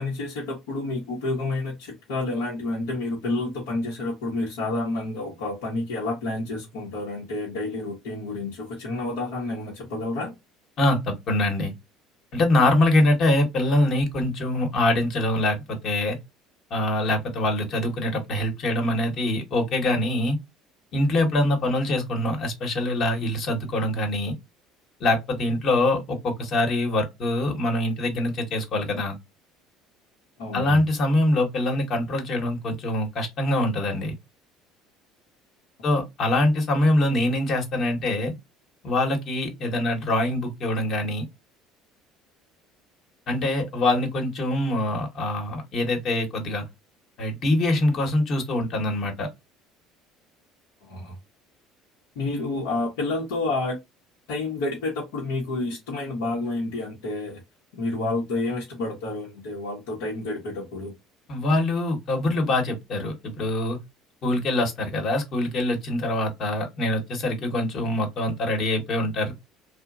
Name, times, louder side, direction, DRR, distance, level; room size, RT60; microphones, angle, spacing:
voice 1, 0.0-10.3 30.4-30.8 50.9-51.1 52.2-53.8 54.3-57.4 57.7-60.9, left 2 dB, 80° left, 0.9 m, -29 dB
voice 2, 10.8-11.7 12.3-16.2 16.7-20.4 20.9-24.4 25.0-29.2 30.5-34.2 35.8-38.3 38.8-41.3 43.3-46.6 47.2-49.3 61.3-63.8 64.2-69.3, left 1 dB, 55° left, 1.1 m, -24 dB
2.9 x 2.1 x 2.3 m
hypercardioid pair, 70°, 0 cm